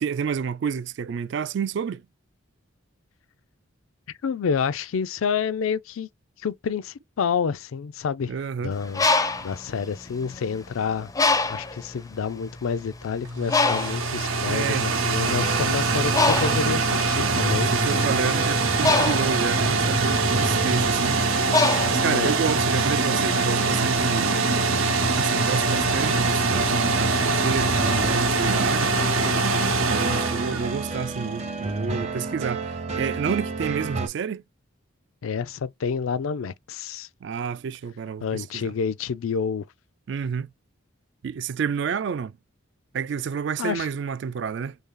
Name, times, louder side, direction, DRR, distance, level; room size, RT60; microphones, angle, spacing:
voice 1, 0.0-2.0 8.3-8.7 14.5-15.0 17.5-21.2 21.9-24.4 25.2-29.0 29.8-34.4 37.2-38.7 40.1-40.5 41.2-42.3 42.9-44.8, right 6 dB, 60° right, 0.3 m, -29 dB
voice 2, 4.2-6.1 6.4-8.3 8.6-9.1 9.4-11.1 11.5-18.1 22.0-22.3 35.2-37.1 38.2-39.7 43.6-43.9, left 6 dB, 80° left, 0.4 m, -28 dB
Bird, 8.8-10.6 11.2-11.8 12.5-12.7 12.9-22.6, left 3 dB, 15° left, 0.4 m, -25 dB
sound 1, 13.2-31.4, right 3 dB, 90° right, 0.8 m, -24 dB
sound 2, 15.2-34.1, right 2 dB, 30° right, 0.7 m, -31 dB
3.2 x 2.7 x 3.7 m
head